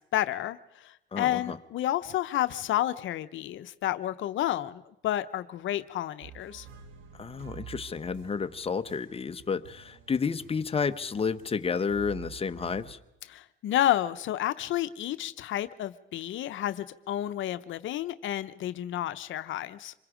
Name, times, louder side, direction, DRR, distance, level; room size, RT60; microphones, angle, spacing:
voice 1, 0.1-6.7 13.3-19.9, left 13 dB, 75° left, 12 dB, 0.7 m, -30 dB
voice 2, 1.1-1.6 7.2-13.0, left 5 dB, 30° left, 10 dB, 1.0 m, -31 dB
sound 1, 6.2-12.9, right 9 dB, 85° right, 2.0 m, -49 dB
26.5 x 22.5 x 5.0 m, 0.89 s
cardioid pair, 90°, 20 cm